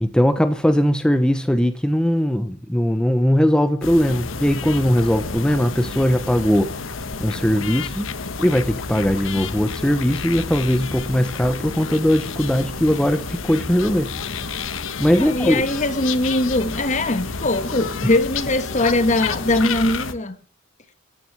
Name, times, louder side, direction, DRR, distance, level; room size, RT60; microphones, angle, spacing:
voice 1, 0.0-6.7 7.2-8.1 8.4-14.1 15.0-15.6, equal, 5° left, 0.9 m, -19 dB
sound 1, 3.8-20.1, left 4 dB, 80° left, 1.2 m, -30 dB
voice 2, 15.2-20.3, left 2 dB, 40° left, 1.4 m, -21 dB
14.0 x 9.7 x 7.3 m
head